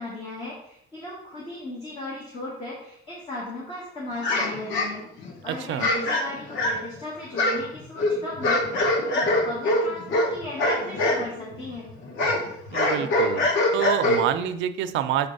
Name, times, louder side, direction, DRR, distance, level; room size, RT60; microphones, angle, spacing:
voice 1, 0.0-5.0 5.4-11.9, left 2 dB, 30° left, -5 dB, 1.9 m, -37 dB
sound 1, 4.2-5.3 5.8-7.0 7.3-11.3 11.5-14.5, left 1 dB, 85° left, 1.4 m, -24 dB
voice 2, 5.5-5.9 12.7-13.4 13.7-15.3, right 11 dB, 80° right, 11 dB, 0.6 m, -27 dB
7.0 x 4.3 x 5.3 m, 0.70 s
cardioid pair, 170°, 19 cm